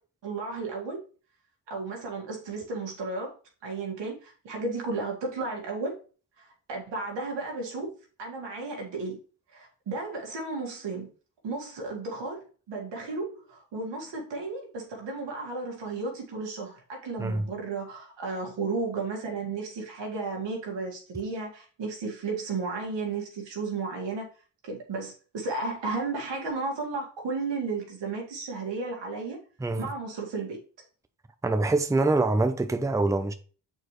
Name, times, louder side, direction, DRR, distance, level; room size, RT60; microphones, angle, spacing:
voice 1, 0.2-1.0 1.7-3.3 3.6-6.0 6.4-7.9 8.2-9.2 9.5-11.1 11.4-24.3 24.6-29.4 29.8-30.6, right 3 dB, 90° right, 1.9 m, -33 dB
voice 2, 31.4-33.3, right 2 dB, 10° right, 0.6 m, -25 dB
7.3 x 4.3 x 3.1 m
cardioid pair, 70°, 42 cm